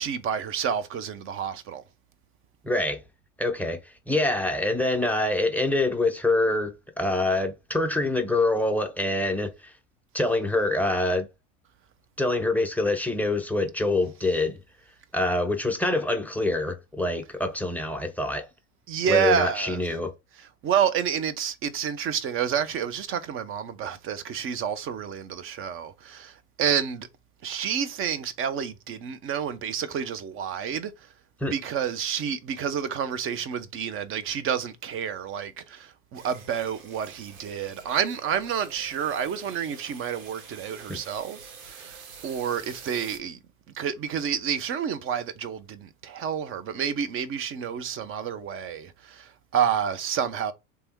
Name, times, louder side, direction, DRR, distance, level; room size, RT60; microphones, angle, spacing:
voice 1, 0.0-1.8 18.9-19.8 20.4-27.1 27.4-30.9 31.5-42.0 42.2-43.4 43.7-50.5, right 8 dB, 30° right, 0.7 m, -29 dB
voice 2, 2.6-3.0 3.4-3.8 4.1-9.7 10.1-11.3 12.2-14.6 15.1-18.4 19.0-20.1 31.4-31.5 40.9-41.0, left 2 dB, 5° left, 0.6 m, -25 dB
sound 1, 36.1-43.2, right 6 dB, 80° right, 1.4 m, -47 dB
3.4 x 3.2 x 4.5 m
hypercardioid pair, 105°, 42 cm